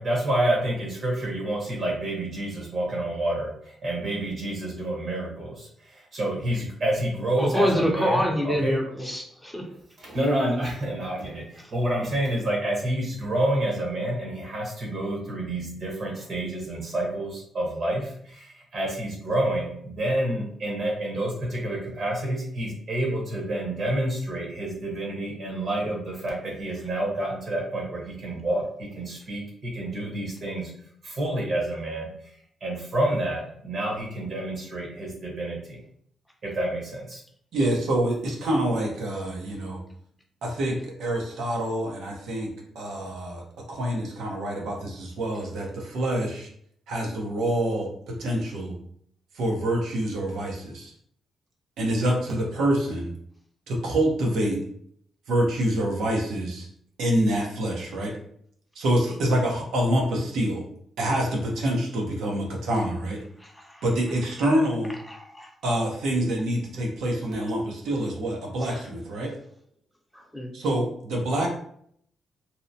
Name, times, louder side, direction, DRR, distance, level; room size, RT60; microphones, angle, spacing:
voice 1, 0.0-8.8 10.0-30.7 31.0-32.1 32.6-35.8 36.4-37.2, right 1 dB, 50° right, -2 dB, 1.0 m, -28 dB
voice 2, 7.4-9.2 9.5-9.6 63.4-63.8 65.1-65.5 68.6-68.8 70.3-70.5, equal, 5° left, 0 dB, 0.6 m, -26 dB
voice 3, 37.5-39.8 40.4-43.4 43.7-46.5 46.9-48.7 49.3-50.9 51.8-53.1 53.7-54.6 55.3-56.7 57.0-58.2 58.8-60.6 61.0-63.2 63.8-65.0 65.6-69.3 70.5-71.5, right 1 dB, 80° right, 0 dB, 0.7 m, -26 dB
2.8 x 2.0 x 2.6 m, 0.66 s
cardioid pair, 95°, 0 cm